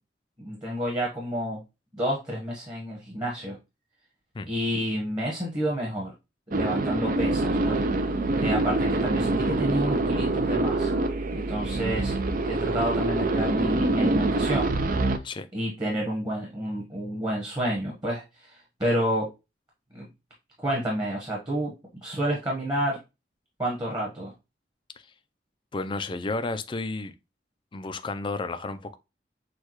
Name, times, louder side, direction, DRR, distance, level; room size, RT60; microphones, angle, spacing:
voice 1, 0.4-1.6 1.9-3.6 4.5-6.1 6.5-7.8 8.4-10.9 11.3-12.1 12.4-14.7 15.5-19.3 19.9-20.1 20.6-21.7 22.0-23.0 23.6-24.3, right 1 dB, 25° right, 1.2 m, -29 dB
sound 1, 6.5-15.2, right 2 dB, 50° right, 0.5 m, -25 dB
sound 2, 7.1-14.9, right 2 dB, 85° right, 0.8 m, -37 dB
voice 2, 25.7-27.1 27.7-29.0, left 3 dB, 30° left, 0.4 m, -32 dB
6.4 x 2.3 x 3.0 m
head